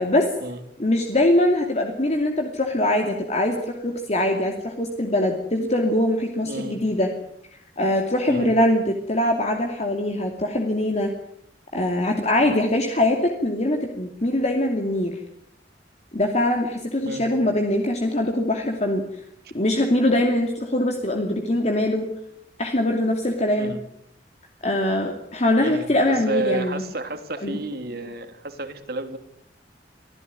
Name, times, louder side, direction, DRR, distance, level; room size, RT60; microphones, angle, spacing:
voice 1, 0.8-7.1 7.8-11.1 11.7-15.2 16.1-19.0 19.5-22.1 22.6-23.8 24.6-26.8 27.4-27.6, left 1 dB, 40° left, 2 dB, 2.6 m, -22 dB
voice 2, 6.5-6.8 8.3-8.5 12.4-12.6 17.0-17.3 23.6-23.8 25.6-29.2, right 2 dB, 60° right, 7 dB, 3.1 m, -31 dB
25.5 x 15.0 x 9.5 m, 0.77 s
head